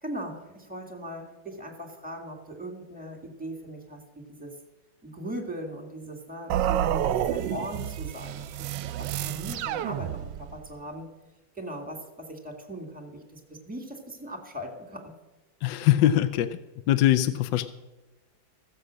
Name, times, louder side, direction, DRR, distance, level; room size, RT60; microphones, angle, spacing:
voice 1, 0.0-4.5 5.0-8.7 9.0-11.1 11.5-15.1, equal, 5° right, 3 dB, 1.7 m, -39 dB
sound 1, 6.5-10.6, right 11 dB, 75° right, 1.2 m, -29 dB
voice 2, 15.6-16.5 16.9-17.7, left 13 dB, 75° left, 11 dB, 1.2 m, -22 dB
15.0 x 7.7 x 6.3 m, 1.1 s
omnidirectional pair, 2.1 m